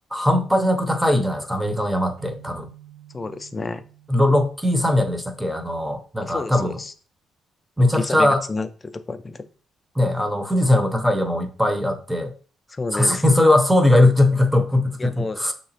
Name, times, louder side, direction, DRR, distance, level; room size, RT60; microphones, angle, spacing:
voice 1, 0.1-2.7 4.1-6.8 7.8-8.4 10.0-12.3 12.9-15.5, left 1 dB, 5° right, 0.7 m, -20 dB
sound 1, 2.2-5.7, right 12 dB, 75° right, 1.4 m, -49 dB
voice 2, 3.1-3.8 6.2-6.9 7.8-9.5 12.7-13.2 15.0-15.4, left 3 dB, 25° left, 0.4 m, -30 dB
6.1 x 2.9 x 2.8 m
cardioid pair, 90°, 0 cm